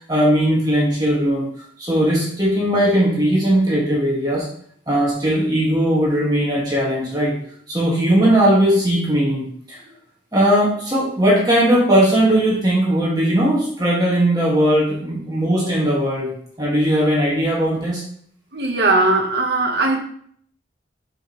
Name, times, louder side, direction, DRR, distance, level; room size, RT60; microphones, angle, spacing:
voice 1, 0.0-1.5 1.8-4.5 4.9-7.4 7.7-9.8 10.3-16.3 16.6-18.0, right 1 dB, 20° right, 1.8 m, -18 dB
voice 2, 18.5-20.0, right 2 dB, 60° right, 1.1 m, -18 dB
7.9 x 5.3 x 3.1 m
head